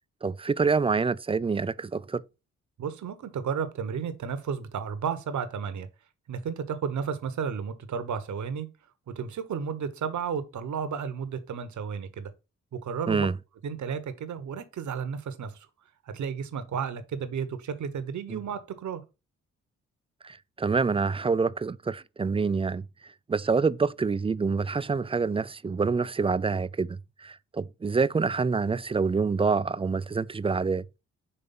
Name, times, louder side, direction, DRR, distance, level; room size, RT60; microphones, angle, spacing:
voice 1, 0.2-2.2 13.1-13.3 18.3-18.4 20.2-22.9 23.3-30.8, right 4 dB, 20° right, 0.4 m, -26 dB
voice 2, 2.8-5.9 6.3-8.7 9.1-12.3 12.7-13.3 13.6-15.7 16.1-19.0, right 6 dB, 65° right, 1.1 m, -33 dB
5.6 x 3.3 x 5.4 m
supercardioid pair, 45°, 31 cm